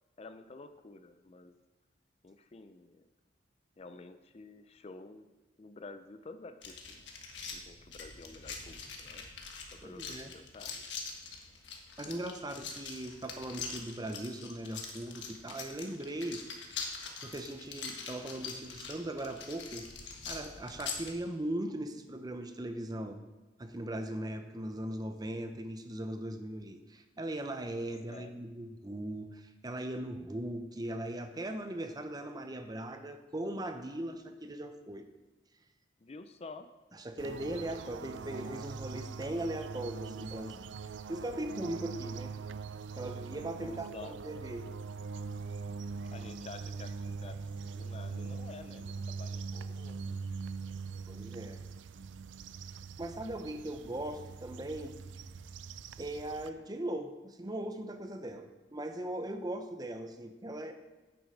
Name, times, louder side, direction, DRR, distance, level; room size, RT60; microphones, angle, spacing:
voice 1, 0.2-1.5 2.2-3.1 3.8-5.3 5.6-7.1 7.5-9.3 9.7-10.8 28.1-28.4 36.0-36.7 43.5-44.2 46.1-50.2 51.0-51.1, left 3 dB, 35° left, 9 dB, 0.4 m, -50 dB
sound 1, 6.6-21.1, left 5 dB, 80° left, 1.4 m, -44 dB
voice 2, 9.8-10.3 12.0-16.7 17.2-19.9 20.3-23.2 23.6-35.1 37.0-40.8 41.1-42.4 42.9-44.7 51.1-51.6 53.0-55.0 56.0-60.7, right 1 dB, 20° right, 7 dB, 0.7 m, -39 dB
sound 2, 37.2-56.5, right 5 dB, 90° right, 0.4 m, -42 dB
9.2 x 7.1 x 5.1 m, 1.2 s
head